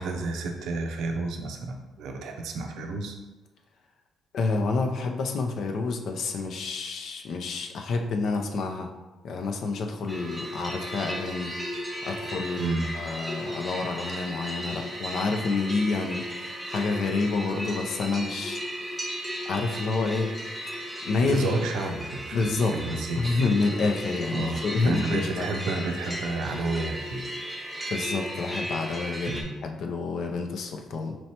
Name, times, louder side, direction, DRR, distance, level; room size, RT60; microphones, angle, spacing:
voice 1, 0.0-3.2 12.6-12.8 21.2-23.4 24.3-27.2 29.3-29.5, right 3 dB, 85° right, 4 dB, 0.5 m, -31 dB
voice 2, 4.3-8.9 9.2-11.5 12.0-18.6 19.4-20.3 21.0-21.5 22.3-22.8 23.2-25.5 27.9-29.3 29.6-31.2, left 3 dB, 70° left, 3 dB, 0.5 m, -28 dB
sound 1, 10.1-29.4, equal, 5° right, 1.0 m, -35 dB
4.3 x 3.1 x 2.8 m, 1.2 s
cardioid pair, 90°, 0 cm